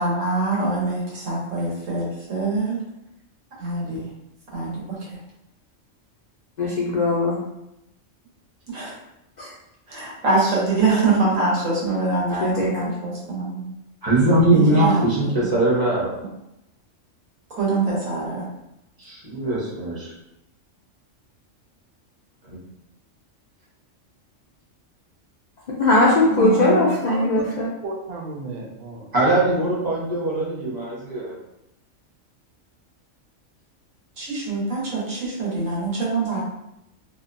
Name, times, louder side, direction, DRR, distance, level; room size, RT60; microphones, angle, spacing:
voice 1, 0.0-2.8 3.6-4.1 4.5-5.1 8.7-8.9 9.9-13.6 14.5-15.1 15.4-15.5 17.5-18.5 26.3-26.9 34.2-36.4, right 3 dB, 85° right, -5 dB, 1.3 m, -24 dB
voice 2, 6.6-7.4 9.4-9.5 12.4-12.7 25.8-27.7, left 2 dB, 80° left, -5 dB, 0.4 m, -19 dB
voice 3, 14.0-16.1 19.0-20.1 29.1-31.4, right 1 dB, 20° right, -7 dB, 0.6 m, -21 dB
voice 4, 27.0-29.1, right 3 dB, 60° right, 0 dB, 0.7 m, -34 dB
2.6 x 2.1 x 2.5 m, 0.86 s
omnidirectional pair, 1.3 m